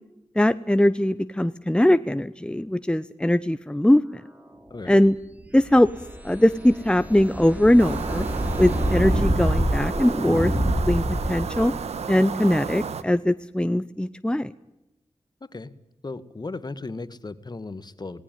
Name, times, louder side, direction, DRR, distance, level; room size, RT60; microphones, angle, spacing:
voice 1, 0.4-4.2 4.9-5.2 5.5-5.9 6.2-8.3 8.6-10.5 10.9-11.7 12.1-14.5, left 1 dB, 10° left, 13 dB, 0.9 m, -21 dB
sound 1, 5.5-11.8, equal, 15° right, 4.1 m, -26 dB
sound 2, 7.8-13.0, right 6 dB, 85° right, 1.5 m, -32 dB
voice 2, 15.4-15.7 16.0-18.2, left 3 dB, 40° left, 14 dB, 1.8 m, -36 dB
18.5 x 18.0 x 9.3 m, 0.92 s
cardioid pair, 45°, 11 cm